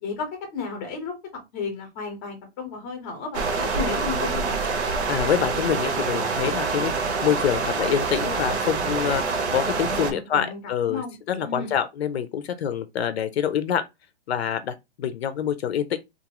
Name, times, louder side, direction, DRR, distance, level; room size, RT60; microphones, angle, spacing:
voice 1, 0.0-1.1 1.5-4.7 9.9-11.7, left 5 dB, 15° left, 0.6 m, -33 dB
sound 1, 3.3-10.1, right 4 dB, 80° right, 1.0 m, -26 dB
voice 2, 5.1-13.8 14.3-16.0, left 9 dB, 70° left, 0.6 m, -26 dB
2.5 x 2.4 x 2.9 m
hypercardioid pair, 170°, 33 cm